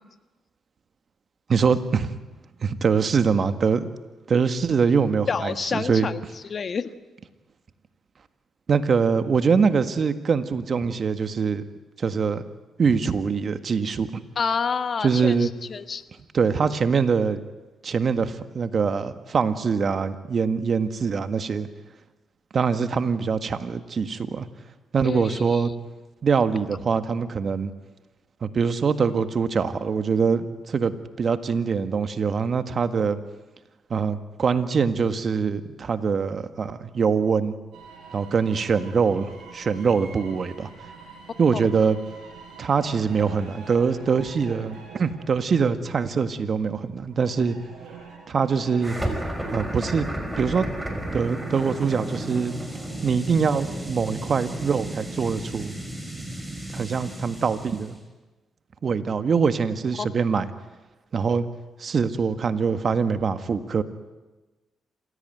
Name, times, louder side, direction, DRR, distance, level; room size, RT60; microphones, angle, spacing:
voice 1, 1.5-2.2 2.6-3.9 4.3-6.1 8.7-11.6 12.0-12.4 12.8-14.1 15.0-15.5 16.3-17.4 17.8-21.7 22.5-24.5 24.9-25.7 26.2-27.7 28.4-33.2 33.9-37.6 38.1-40.7 41.4-42.0 42.6-47.6 48.3-49.0 49.5-50.1 50.4-50.7 51.1-52.5 53.0-55.7 56.7-58.0 58.8-60.5 61.1-61.4 61.8-63.8, right 5 dB, 50° right, 10 dB, 1.7 m, -23 dB
voice 2, 5.3-6.9 14.3-16.0 25.0-25.6 41.5-41.6, left 5 dB, 50° left, 11 dB, 1.4 m, -28 dB
sound 1, 37.7-49.0, right 5 dB, 80° right, 6.7 m, -45 dB
sound 2, 48.8-57.9, right 1 dB, 10° right, 5.5 m, -33 dB
27.0 x 17.0 x 9.2 m, 1.2 s
cardioid pair, 70°, 0 cm